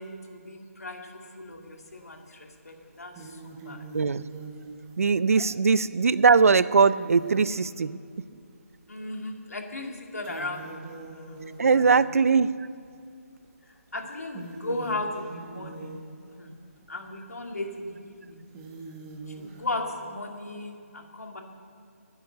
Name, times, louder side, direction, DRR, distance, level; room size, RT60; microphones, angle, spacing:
voice 1, 0.0-3.8 5.4-5.5 5.8-5.9 8.9-10.9 11.3-11.9 13.9-16.0 16.4-16.6 16.9-18.4 19.3-21.4, left 2 dB, 80° left, 3 dB, 2.1 m, -36 dB
sound 1, 1.7-2.2 2.7-8.5 9.1-9.2 9.6-12.6 13.4-13.7 14.1-19.9, right 3 dB, 15° right, 1.1 m, -44 dB
voice 2, 3.9-4.2 5.0-8.0 11.6-12.5, right 5 dB, 65° right, 17 dB, 0.5 m, -21 dB
11.5 x 9.6 x 7.9 m, 2.4 s
figure-of-eight pair, 160°, 8 cm